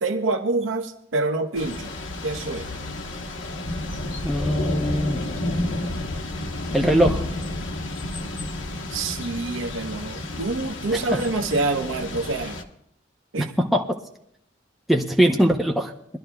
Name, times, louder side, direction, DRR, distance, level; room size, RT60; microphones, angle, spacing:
voice 1, 0.0-1.9 2.2-2.7 8.9-12.6 13.3-13.5, right 3 dB, 85° right, 5 dB, 0.8 m, -26 dB
Thunder / Rain, 1.5-12.6, left 1 dB, 80° left, 1.0 m, -30 dB
voice 2, 4.2-5.3 6.7-7.2 11.1-11.2 13.4-14.0 14.9-15.9, equal, ahead, 0 dB, 0.7 m, -21 dB
23.0 x 12.0 x 2.3 m, 0.74 s
head